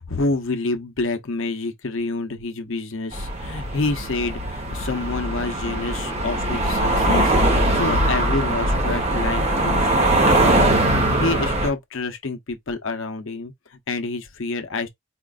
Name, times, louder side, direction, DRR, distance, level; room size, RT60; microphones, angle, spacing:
voice 1, 0.0-10.0 10.4-10.8 11.2-14.9, left 3 dB, 60° left, 0.7 m, -28 dB
sound 1, 3.1-11.7, right 1 dB, 30° right, 1.0 m, -21 dB
4.4 x 2.4 x 2.4 m
head